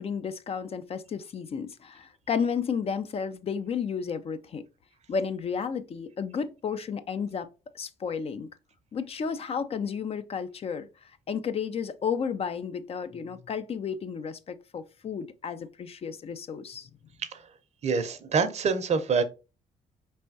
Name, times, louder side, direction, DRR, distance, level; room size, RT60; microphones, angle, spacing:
voice 1, 0.0-4.6 5.1-7.5 7.7-8.5 8.9-10.9 11.3-16.9, left 6 dB, 45° left, 0.5 m, -32 dB
voice 2, 17.8-19.2, right 5 dB, 50° right, 0.7 m, -25 dB
4.3 x 3.4 x 2.6 m
supercardioid pair, 65°, 15 cm